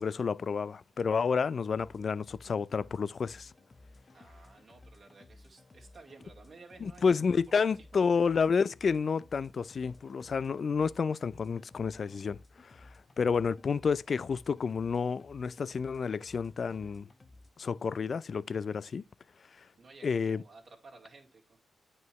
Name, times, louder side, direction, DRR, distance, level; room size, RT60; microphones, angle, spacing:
voice 1, 0.0-3.5 6.8-12.9 13.2-17.1 17.6-19.0 20.0-20.4, left 5 dB, 45° left, 0.3 m, -30 dB
sound 1, 1.8-17.5, left 2 dB, 30° left, 0.8 m, -57 dB
voice 2, 4.1-8.1 19.8-21.6, right 3 dB, 50° right, 2.3 m, -55 dB
9.3 x 5.4 x 3.1 m
cardioid pair, 105°, 0 cm